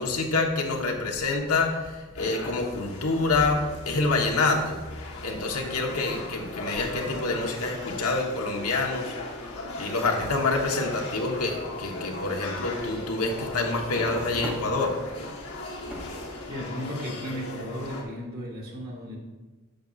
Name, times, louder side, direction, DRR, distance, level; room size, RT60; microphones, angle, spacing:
voice 1, 0.0-4.8 5.2-9.1 9.8-14.9, left 3 dB, 85° left, 1 dB, 1.1 m, -27 dB
sound 1, 2.2-18.0, left 2 dB, 70° left, 1.4 m, -38 dB
sound 2, 11.5-16.5, right 1 dB, 10° right, 0.7 m, -44 dB
voice 2, 16.5-19.2, equal, 45° right, -2 dB, 1.9 m, -35 dB
10.0 x 6.5 x 2.5 m, 1.2 s
head